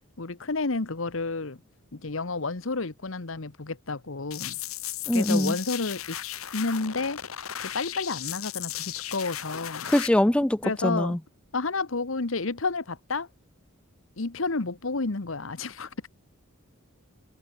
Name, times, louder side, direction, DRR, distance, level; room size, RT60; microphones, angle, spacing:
voice 1, 0.2-1.6 1.9-4.6 5.1-6.2 6.5-7.2 7.6-9.9 10.6-11.2 11.5-13.3 14.2-15.9, left 3 dB, 70° left, 1.2 m, -30 dB
sound 1, 4.3-10.1, left 11 dB, 85° left, 1.5 m, -36 dB
voice 2, 5.1-5.6 9.9-11.2, left 1 dB, 5° left, 0.3 m, -23 dB
head